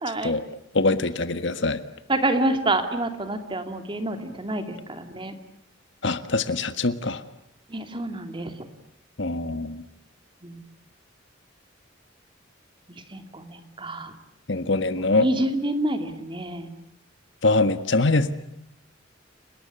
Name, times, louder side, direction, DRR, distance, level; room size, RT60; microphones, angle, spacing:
voice 1, 0.0-0.3 2.1-5.3 7.7-8.5 10.4-10.6 12.9-14.1 15.0-16.7, right 1 dB, 25° right, 7 dB, 2.7 m, -28 dB
voice 2, 0.7-1.8 6.0-7.2 9.2-9.8 14.5-15.3 17.4-18.3, left 2 dB, 65° left, 11 dB, 1.6 m, -23 dB
30.0 x 19.5 x 9.7 m, 0.78 s
head